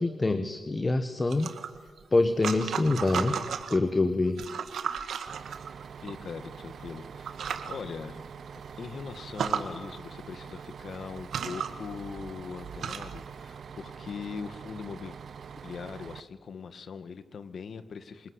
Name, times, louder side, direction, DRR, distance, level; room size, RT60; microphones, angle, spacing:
voice 1, 0.0-1.5 2.1-3.4 3.7-4.4, left 2 dB, 30° left, 10 dB, 1.4 m, -25 dB
sound 1, 1.3-3.8 4.3-6.1 6.8-7.0 7.2-7.8 8.2-8.3 8.6-8.7 9.2-9.7 10.6-10.7 11.2-13.3, right 7 dB, 90° right, 1.8 m, -34 dB
Bus, 5.3-16.2, right 6 dB, 70° right, 0.9 m, -44 dB
voice 2, 6.0-8.2 8.8-15.2 15.6-18.3, left 5 dB, 70° left, 12 dB, 1.6 m, -41 dB
25.5 x 20.0 x 9.8 m, 1.5 s
cardioid pair, 80°, 0 cm